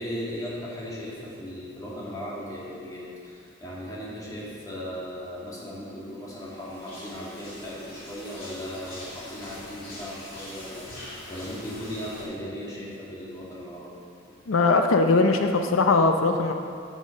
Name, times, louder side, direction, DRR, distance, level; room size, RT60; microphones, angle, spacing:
voice 1, 0.0-14.0, equal, 20° left, -6 dB, 2.0 m, -37 dB
sound 1, 6.4-12.2, left 1 dB, 45° left, 2.6 m, -43 dB
voice 2, 14.5-16.5, left 3 dB, 90° left, 5 dB, 0.6 m, -20 dB
7.4 x 7.2 x 6.5 m, 2.4 s
head